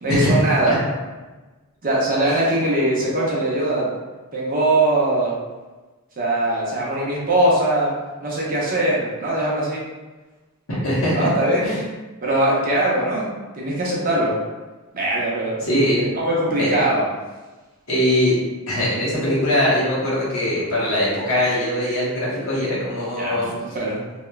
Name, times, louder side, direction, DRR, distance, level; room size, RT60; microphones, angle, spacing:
voice 1, 0.0-0.8 1.8-3.9 4.3-5.4 6.2-7.9 8.2-9.8 11.1-11.7 12.2-14.4 14.9-15.6 16.2-17.1 23.2-24.0, right 1 dB, 40° right, -5 dB, 0.6 m, -21 dB
voice 2, 10.7-11.3 11.6-11.8 15.6-16.1 16.6-16.7 17.9-18.4 18.7-23.5, left 1 dB, 65° left, -7 dB, 0.9 m, -21 dB
2.9 x 2.2 x 2.2 m, 1.2 s
head